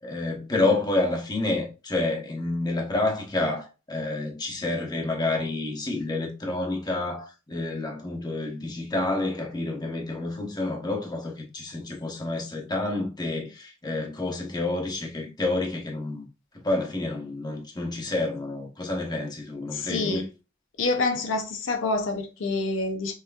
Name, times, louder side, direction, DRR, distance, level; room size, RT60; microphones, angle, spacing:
voice 1, 0.0-16.2 16.6-20.3, left 2 dB, 20° left, 1.0 m, -29 dB
voice 2, 19.7-20.3 20.8-23.1, left 3 dB, 80° left, 0.6 m, -27 dB
5.7 x 2.9 x 2.4 m
head